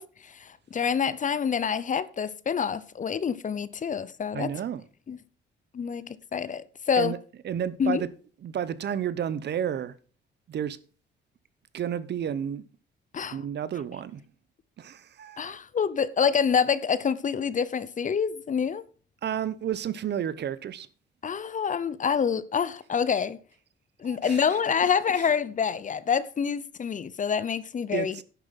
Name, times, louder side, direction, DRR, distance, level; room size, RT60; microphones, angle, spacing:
voice 1, 0.0-4.5 5.1-5.2 5.7-7.1 7.8-8.0 13.1-13.4 15.4-18.8 21.2-23.4 24.0-28.2, left 7 dB, 40° left, 0.8 m, -27 dB
voice 2, 4.3-4.8 7.0-7.2 7.4-8.1 8.4-9.9 10.5-10.8 11.7-12.6 13.3-14.2 14.8-15.6 19.2-20.9 24.0-24.4 27.9-28.2, right 9 dB, 60° right, 1.0 m, -31 dB
11.0 x 7.2 x 5.7 m
cardioid pair, 90°, 20 cm